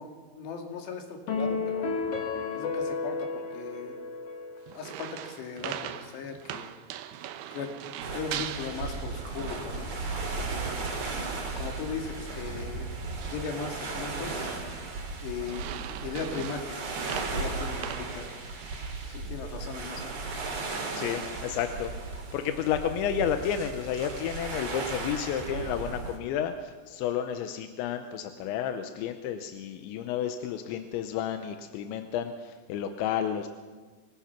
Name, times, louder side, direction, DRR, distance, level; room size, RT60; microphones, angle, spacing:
voice 1, 0.0-2.0 2.5-4.0 4.7-6.7 7.5-7.7 8.1-9.9 10.3-10.6 11.6-12.9 13.3-14.6 15.2-15.7 16.0-18.3 19.1-20.1, left 5 dB, 75° left, 3 dB, 4.4 m, -38 dB
sound 1, 1.3-4.8, left 4 dB, 45° left, 2.2 m, -32 dB
sound 2, 4.7-9.9 10.1-10.5 10.9-11.1 11.5-11.8 12.2-12.4 13.0-13.5 13.8-14.3 14.7-15.0 15.4-18.9 19.2-19.4 20.0-20.4 20.9-21.3, right 11 dB, 75° right, 2.8 m, -41 dB
sound 3, 8.0-26.2, right 3 dB, 40° right, 3.6 m, -36 dB
voice 2, 20.9-33.5, left 9 dB, 90° left, 7 dB, 3.2 m, -31 dB
25.5 x 19.5 x 6.0 m, 1.4 s
omnidirectional pair, 5.1 m